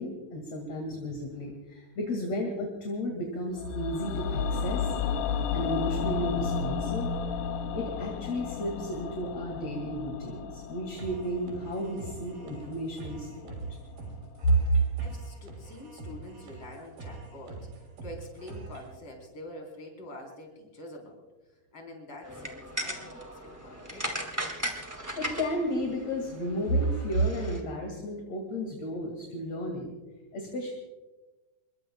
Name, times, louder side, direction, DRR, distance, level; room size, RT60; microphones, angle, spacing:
voice 1, 0.0-4.9 5.5-7.1 7.7-13.5 14.4-14.8 25.2-29.9 30.3-30.7, right 1 dB, 45° left, 1 dB, 2.9 m, -32 dB
sound 1, 3.6-13.7 14.0-14.1, left 6 dB, 75° left, 1.9 m, -33 dB
sound 2, 11.0-19.0, right 3 dB, 75° right, 5.2 m, -44 dB
voice 2, 14.7-21.2 21.7-24.2, left 1 dB, 30° left, 1 dB, 4.4 m, -46 dB
sound 3, 22.2-27.6, equal, 10° right, 0.9 m, -37 dB
27.0 x 22.5 x 2.3 m, 1.1 s
omnidirectional pair, 4.5 m